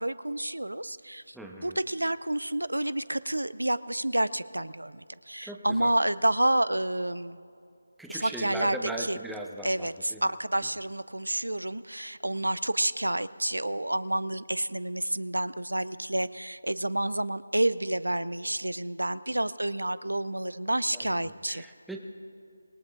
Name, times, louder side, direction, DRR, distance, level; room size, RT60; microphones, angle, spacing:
voice 1, 0.0-1.4 1.6-7.4 8.1-9.2 9.6-21.7, right 1 dB, 90° right, 17 dB, 0.5 m, -29 dB
voice 2, 1.3-1.8 5.4-5.9 8.0-10.2 20.9-22.0, right 1 dB, ahead, 1 dB, 0.9 m, -39 dB
26.5 x 19.0 x 2.5 m, 2.5 s
figure-of-eight pair, 160°, 0 cm